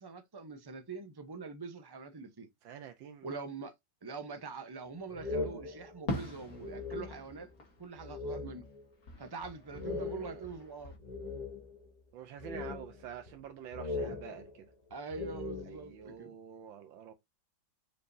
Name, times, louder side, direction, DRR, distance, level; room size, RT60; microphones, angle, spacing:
voice 1, 0.0-2.5 3.2-3.7 4.0-7.5 7.8-8.6 9.2-11.0 14.9-16.3, right 4 dB, 30° right, 0.4 m, -44 dB
voice 2, 2.6-3.3 9.9-10.4 12.1-14.7 15.7-17.1, right 8 dB, 85° right, 1.6 m, -48 dB
sound 1, 5.1-7.5 8.0-8.8 9.2-9.3 9.7-11.9 12.4-13.4 13.7-16.1, left 3 dB, 20° left, 2.8 m, -40 dB
Fireworks, 6.1-8.7 9.0-11.0, left 1 dB, 45° left, 2.4 m, -43 dB
6.8 x 5.2 x 2.7 m
omnidirectional pair, 2.1 m